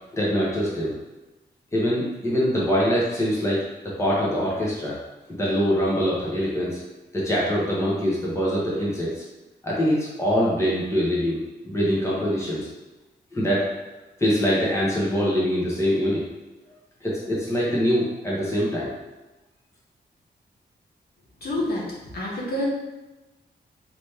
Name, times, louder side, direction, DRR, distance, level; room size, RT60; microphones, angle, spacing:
voice 1, 0.1-0.9 1.7-5.0 5.3-6.8 7.1-9.2 9.6-11.4 11.6-12.7 13.3-13.7 14.2-16.2 17.0-18.9, equal, 15° left, -6 dB, 1.0 m, -24 dB
voice 2, 21.4-22.7, left 1 dB, 60° left, -5 dB, 1.2 m, -28 dB
4.3 x 3.0 x 3.4 m, 1.0 s
wide cardioid pair, 145°, 18 cm